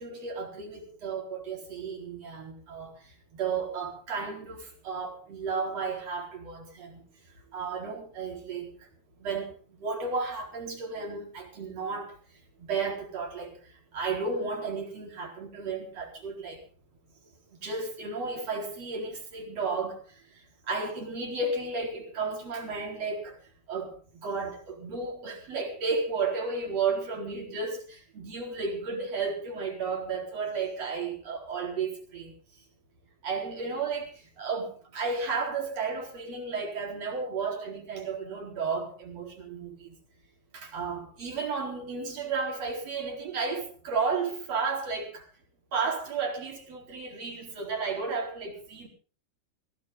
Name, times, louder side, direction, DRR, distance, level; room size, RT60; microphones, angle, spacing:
voice 1, 0.0-2.9 3.3-7.0 7.5-8.7 9.2-12.1 12.6-13.6 13.9-16.6 17.6-20.0 20.7-23.3 23.7-32.3 33.2-34.1 34.4-39.9 40.5-45.2 45.7-48.9, right 4 dB, 35° right, 1 dB, 5.0 m, -33 dB
20.0 x 16.5 x 3.8 m, 0.38 s
omnidirectional pair, 5.5 m